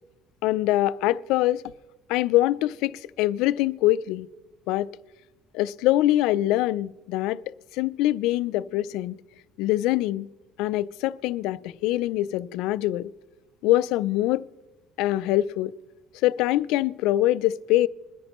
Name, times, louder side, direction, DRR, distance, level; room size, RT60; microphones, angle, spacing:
voice 1, 0.4-1.6 2.1-4.3 4.7-4.9 5.5-7.4 7.7-9.2 9.6-10.3 10.6-13.1 13.6-14.4 15.0-15.7 16.2-17.9, left 15 dB, 75° left, 0.4 m, -24 dB
22.0 x 10.5 x 3.0 m
cardioid pair, 115°, 0 cm